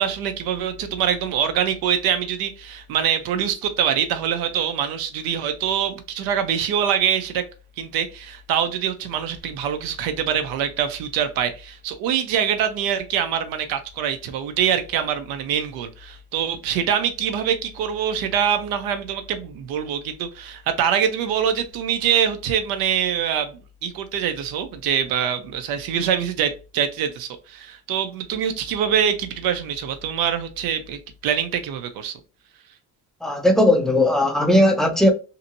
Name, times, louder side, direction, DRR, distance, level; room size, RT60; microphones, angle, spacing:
voice 1, 0.0-7.4 7.8-32.2, right 8 dB, 85° right, 0.7 m, -24 dB
voice 2, 33.2-35.1, left 1 dB, ahead, 0.5 m, -17 dB
2.7 x 2.6 x 2.6 m
cardioid pair, 120°, 34 cm